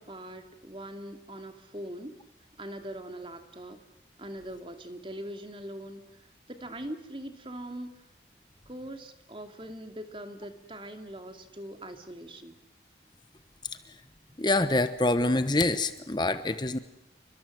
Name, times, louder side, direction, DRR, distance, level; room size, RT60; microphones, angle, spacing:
voice 1, 0.0-2.2 2.6-3.8 4.2-8.1 8.7-12.5, right 1 dB, 30° right, 6 dB, 2.7 m, -42 dB
voice 2, 14.4-16.8, left 2 dB, 25° left, 11 dB, 1.1 m, -26 dB
29.5 x 25.0 x 7.8 m, 0.79 s
head